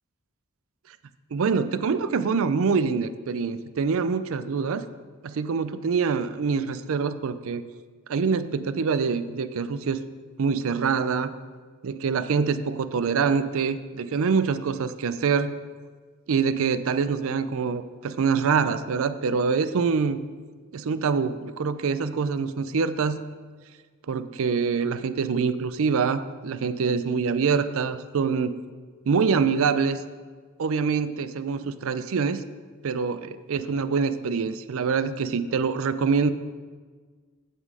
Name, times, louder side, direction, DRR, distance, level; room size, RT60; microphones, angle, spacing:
voice 1, 1.3-4.9 5.2-7.6 8.1-10.0 10.4-11.3 11.8-15.5 16.3-20.2 20.7-23.2 24.1-28.5 29.1-30.0 30.6-32.4 32.8-36.3, right 5 dB, 65° right, 13 dB, 0.4 m, -25 dB
8.4 x 7.5 x 4.8 m, 1.5 s
head